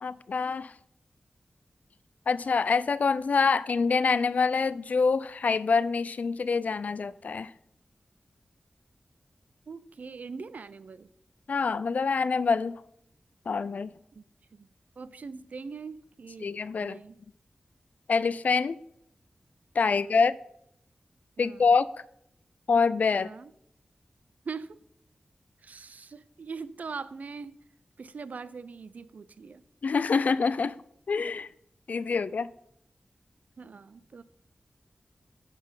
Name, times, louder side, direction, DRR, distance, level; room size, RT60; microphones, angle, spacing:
voice 1, 0.0-0.7 2.3-7.5 11.5-12.8 13.5-13.9 16.4-17.0 18.1-18.8 19.8-20.4 21.4-21.9 22.7-23.3 29.8-30.8 31.1-31.5 31.9-32.5, left 5 dB, 70° left, 17 dB, 0.3 m, -25 dB
voice 2, 9.7-11.1 14.1-14.2 14.5-14.7 15.0-16.5 16.8-17.2 19.9-20.2 21.4-21.8 23.1-23.5 24.4-24.8 25.6-27.5 28.0-29.6 30.1-30.3 33.6-34.2, right 5 dB, 70° right, 16 dB, 0.4 m, -42 dB
10.5 x 4.1 x 5.5 m, 0.73 s
wide cardioid pair, 90°, 3 cm